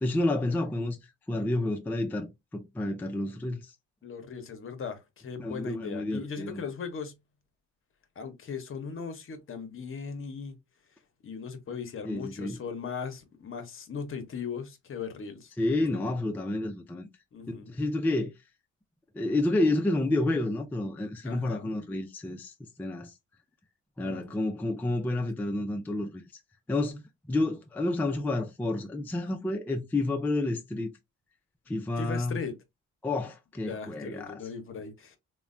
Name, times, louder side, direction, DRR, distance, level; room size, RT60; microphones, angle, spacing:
voice 1, 0.0-1.0 1.3-3.7 5.4-6.6 12.1-12.6 15.6-17.1 17.7-18.3 19.1-22.5 22.8-23.1 24.0-26.2 26.7-27.0 27.3-30.9 31.7-32.4 33.0-34.4, left 2 dB, 5° left, 0.4 m, -29 dB
voice 2, 4.0-7.2 8.2-10.6 11.2-16.0 17.3-17.8 21.2-21.7 24.0-24.2 32.0-32.6 33.6-35.2, left 6 dB, 45° left, 0.8 m, -38 dB
3.0 x 2.2 x 2.4 m
cardioid pair, 90°, 30 cm